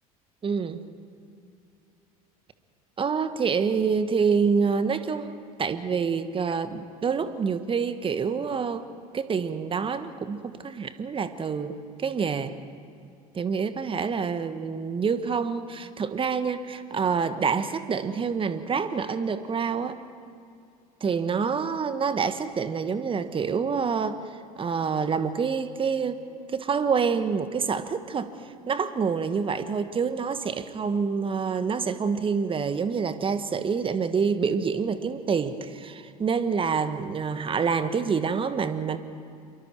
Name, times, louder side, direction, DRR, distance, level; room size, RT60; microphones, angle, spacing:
voice 1, 0.4-0.8 3.0-8.9 9.1-12.5 13.3-20.0 21.0-24.2 24.6-26.2 26.5-28.3 28.7-39.0, right 5 dB, 30° right, 10 dB, 1.5 m, -27 dB
27.0 x 23.5 x 4.6 m, 2.5 s
figure-of-eight pair, 70°, 19 cm